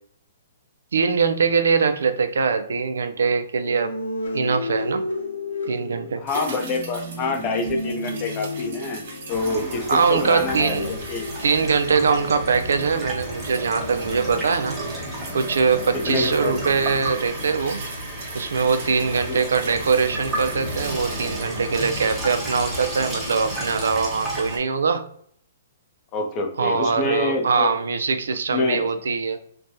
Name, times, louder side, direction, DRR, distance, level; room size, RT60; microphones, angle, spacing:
voice 1, 0.9-4.0 4.3-5.0 5.7-6.2 9.9-11.0 11.4-14.8 15.3-17.8 18.3-25.1 26.6-29.4, right 5 dB, 85° right, 0.4 m, -22 dB
sound 1, 3.6-17.3, left 2 dB, 85° left, 1.2 m, -34 dB
voice 2, 6.2-11.2 15.9-16.6 19.3-19.4 26.1-27.7 28.5-28.9, left 3 dB, 25° left, 0.6 m, -26 dB
sound 2, 6.3-22.8 23.1-23.2, right 3 dB, 55° right, 1.1 m, -41 dB
Water tap faucet / Sink (filling or washing), 9.3-24.6, right 1 dB, 10° right, 0.8 m, -32 dB
3.2 x 2.2 x 2.6 m
hypercardioid pair, 155°, 0 cm